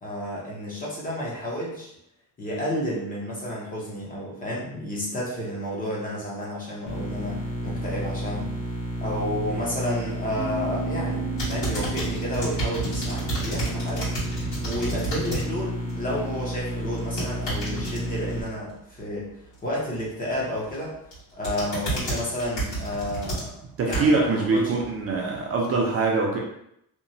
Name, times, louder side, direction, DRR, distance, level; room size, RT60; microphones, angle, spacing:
voice 1, 0.0-1.9 2.4-8.5 9.0-14.1 14.6-19.3 19.6-20.9 21.3-23.5 23.8-24.6, equal, 25° left, -5 dB, 0.6 m, -31 dB
sound 1, 6.9-18.4, equal, 85° left, 1.0 m, -31 dB
Bass guitar, 10.4-16.6, right 6 dB, 70° right, 0.9 m, -38 dB
sound 2, 11.4-15.5 15.8-16.2 17.0-18.0 20.4-20.7 21.1-24.3 24.8-24.9, right 2 dB, 55° left, 1.5 m, -31 dB
voice 2, 23.8-26.4, right 3 dB, 40° right, -1 dB, 0.5 m, -23 dB
2.9 x 2.1 x 2.6 m, 0.75 s
cardioid pair, 175°, 36 cm